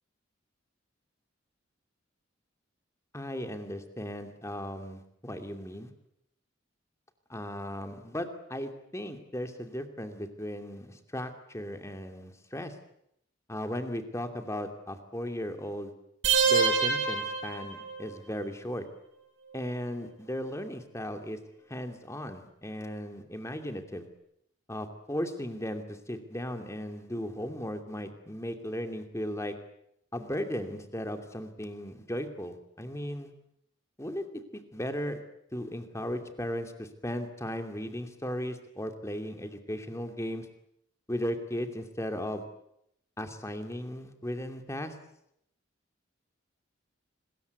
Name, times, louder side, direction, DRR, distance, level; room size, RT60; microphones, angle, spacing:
voice 1, 3.1-5.9 7.3-12.7 13.5-15.9 16.4-18.8 19.5-21.4 21.7-24.1 24.7-29.5 30.1-33.3 34.0-34.2 34.5-35.2 35.5-40.5 41.1-42.4 43.2-44.9, equal, 15° left, 6 dB, 2.6 m, -36 dB
sound 1, 16.2-18.2, right 5 dB, 70° right, 6.3 m, -26 dB
26.0 x 21.0 x 8.3 m, 0.76 s
head